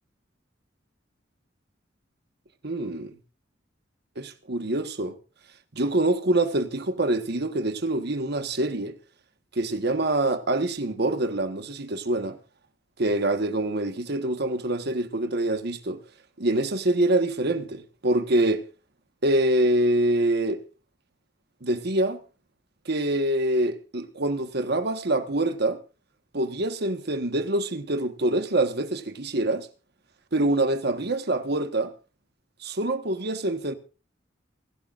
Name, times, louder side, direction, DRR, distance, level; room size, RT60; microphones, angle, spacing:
voice 1, 2.6-3.1 4.2-5.1 5.7-9.0 9.5-12.4 13.0-16.0 16.4-18.6 19.2-20.6 21.6-22.2 22.8-25.8 26.3-29.7 30.3-31.9 32.6-33.7, right 1 dB, 60° right, 1.4 m, -25 dB
28.5 x 12.0 x 2.6 m
head